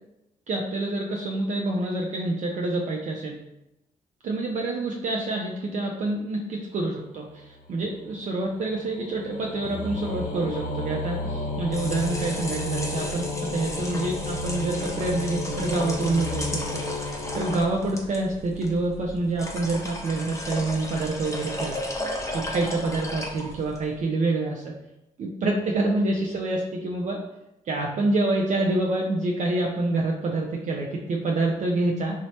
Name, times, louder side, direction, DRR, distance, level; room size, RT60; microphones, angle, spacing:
voice 1, 0.5-3.4 4.2-21.8 22.3-24.7 25.2-27.2 27.7-32.1, right 2 dB, 55° right, -1 dB, 0.4 m, -27 dB
sound 1, 7.3-18.3, left 2 dB, 65° left, 0.5 m, -33 dB
sound 2, 11.5-23.9, left 1 dB, 20° left, 0.7 m, -35 dB
3.0 x 2.0 x 2.7 m, 0.87 s
supercardioid pair, 55°, 15 cm